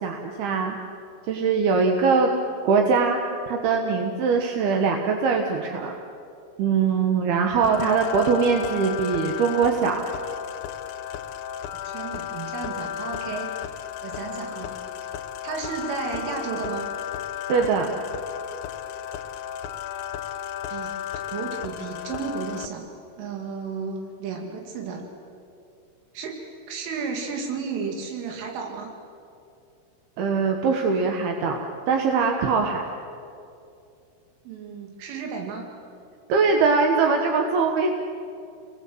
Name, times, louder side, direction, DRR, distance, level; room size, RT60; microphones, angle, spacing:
voice 1, 0.0-0.8 1.2-2.3 2.6-6.0 6.6-10.0 17.5-17.9 30.2-32.8 36.3-37.9, right 5 dB, 65° right, 2 dB, 2.9 m, -22 dB
sound 1, 7.6-22.7, left 10 dB, 75° left, 2.5 m, -34 dB
voice 2, 11.8-13.7 14.0-14.8 15.4-16.9 20.7-25.1 26.1-26.4 26.7-28.9 34.4-35.7, right 5 dB, 85° right, 2 dB, 4.7 m, -33 dB
29.5 x 20.5 x 7.9 m, 2.6 s
omnidirectional pair, 5.5 m